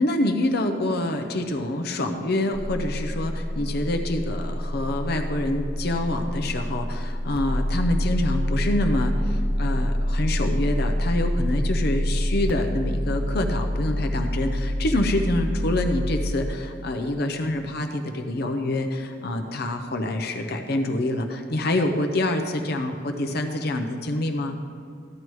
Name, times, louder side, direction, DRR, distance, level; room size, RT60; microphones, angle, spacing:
voice 1, 0.0-24.6, left 1 dB, 55° left, 5 dB, 0.7 m, -26 dB
sound 1, 2.5-16.4, equal, 10° left, 0.4 m, -26 dB
14.5 x 10.5 x 3.1 m, 2.3 s
head